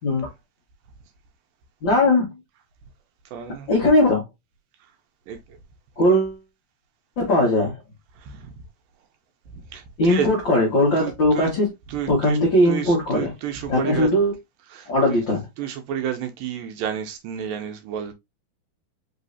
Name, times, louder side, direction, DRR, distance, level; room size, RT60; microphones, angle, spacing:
voice 1, 1.8-2.3 3.7-4.2 6.0-6.4 7.2-7.7 10.0-11.7 12.1-13.3 13.7-14.3 14.9-15.4, left 1 dB, 80° left, 1.0 m, -19 dB
voice 2, 3.3-3.7 5.3-5.4 8.2-8.5 9.7-10.3 11.0-11.6 11.9-14.1 14.6-15.2 15.6-18.1, right 8 dB, 80° right, 2.1 m, -31 dB
5.4 x 3.2 x 2.6 m
omnidirectional pair, 4.4 m